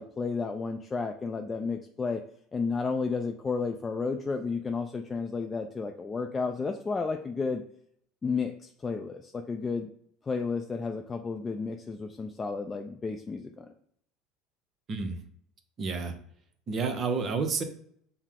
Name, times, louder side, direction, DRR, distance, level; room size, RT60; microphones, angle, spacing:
voice 1, 0.0-2.2 2.5-7.6 8.2-9.9 10.3-13.7, left 4 dB, 25° left, 4 dB, 0.4 m, -32 dB
voice 2, 15.8-16.1 16.7-17.6, right 4 dB, 40° right, 7 dB, 0.7 m, -30 dB
5.6 x 2.1 x 3.6 m, 0.66 s
hypercardioid pair, 75°, 0 cm